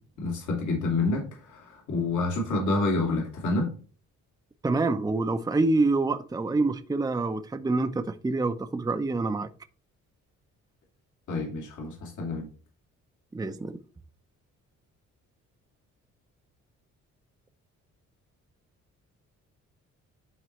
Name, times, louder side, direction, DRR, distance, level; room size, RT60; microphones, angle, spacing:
voice 1, 0.2-3.7 11.3-12.5, left 2 dB, 75° left, 2.5 m, -28 dB
voice 2, 4.6-9.5 13.3-13.8, right 3 dB, 15° right, 0.7 m, -26 dB
11.0 x 4.0 x 3.1 m
cardioid pair, 90°, 30 cm